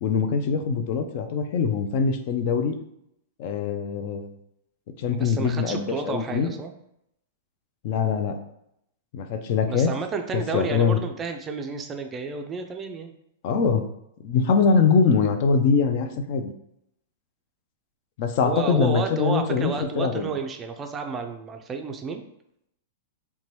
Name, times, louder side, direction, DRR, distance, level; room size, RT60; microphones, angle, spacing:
voice 1, 0.0-2.8 3.4-4.4 5.0-6.5 7.8-8.4 9.1-9.9 10.3-11.0 13.4-13.9 14.2-16.5 18.2-20.3, left 5 dB, 50° left, 7 dB, 0.4 m, -23 dB
voice 2, 5.1-6.7 9.7-13.1 18.4-22.2, right 5 dB, 20° right, 5 dB, 0.3 m, -31 dB
2.8 x 2.2 x 3.1 m, 0.77 s
hypercardioid pair, 130°, 0 cm